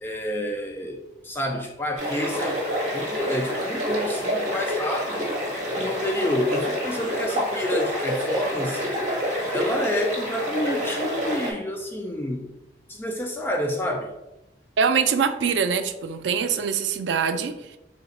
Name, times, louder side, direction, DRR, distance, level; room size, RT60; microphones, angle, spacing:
voice 1, 0.0-2.6 2.9-5.4 5.7-8.9 9.5-12.5 12.9-14.1, equal, 15° left, 2 dB, 0.3 m, -29 dB
sound 1, 2.0-11.5, equal, 45° right, 1.1 m, -27 dB
voice 2, 14.8-17.8, right 6 dB, 90° right, 9 dB, 0.4 m, -24 dB
3.8 x 2.4 x 4.0 m, 0.93 s
head